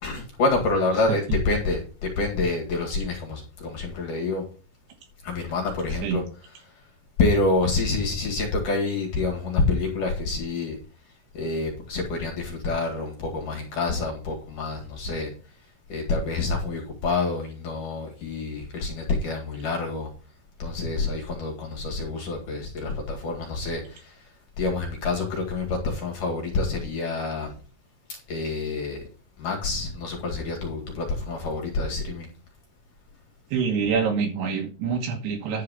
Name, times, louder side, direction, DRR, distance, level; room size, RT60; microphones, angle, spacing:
voice 1, 0.0-4.4 5.2-6.2 7.2-10.8 11.3-15.3 15.9-20.1 20.6-24.1 24.6-27.5 28.1-29.0 29.4-32.3, left 3 dB, 50° left, 3.1 m, -27 dB
voice 2, 33.5-35.6, right 6 dB, 70° right, 3.0 m, -26 dB
11.0 x 4.7 x 6.7 m
omnidirectional pair, 5.6 m